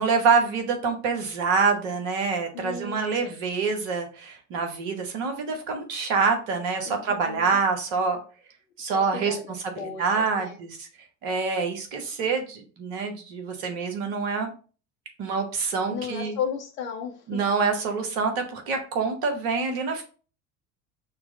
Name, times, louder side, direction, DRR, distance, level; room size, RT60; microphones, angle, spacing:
voice 1, 0.0-8.2 8.8-9.4 9.8-10.9 11.2-14.5 15.2-16.4 17.3-20.0, right 5 dB, 55° right, 5 dB, 1.1 m, -26 dB
voice 2, 2.5-3.3 6.8-7.6 8.8-10.6 15.9-17.4, left 6 dB, 60° left, 1 dB, 0.8 m, -35 dB
5.9 x 2.0 x 3.6 m, 0.37 s
figure-of-eight pair, 60°, 44 cm